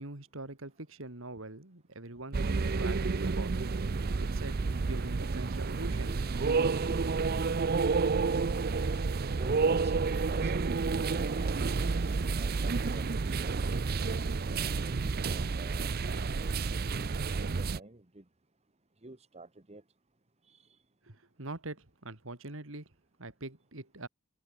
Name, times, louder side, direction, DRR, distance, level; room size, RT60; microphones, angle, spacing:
voice 1, 0.0-3.5 4.2-6.1 21.1-22.9 23.2-24.1, right 2 dB, 65° right, 2.5 m, -43 dB
sound 1, 2.3-17.8, right 4 dB, 45° right, 0.5 m, -30 dB
voice 2, 6.1-6.5 6.9-7.0 9.4-13.8 14.1-18.2 19.0-19.8 20.5-20.6, right 2 dB, 30° right, 1.5 m, -49 dB
head